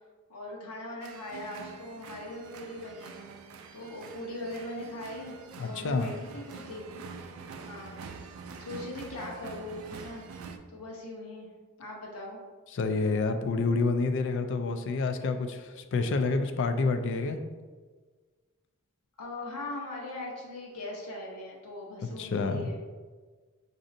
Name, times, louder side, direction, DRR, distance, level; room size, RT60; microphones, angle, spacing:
voice 1, 0.3-3.3 3.7-5.3 5.6-7.0 7.7-10.2 10.7-11.5 11.8-12.4 19.2-22.8, left 1 dB, 85° left, -3 dB, 0.9 m, -40 dB
sound 1, 1.0-10.6, right 5 dB, 70° right, 0.3 m, -46 dB
voice 2, 5.6-6.1 12.7-17.4 22.2-22.7, left 3 dB, 55° left, 7 dB, 0.3 m, -28 dB
5.0 x 2.6 x 2.6 m, 1.4 s
head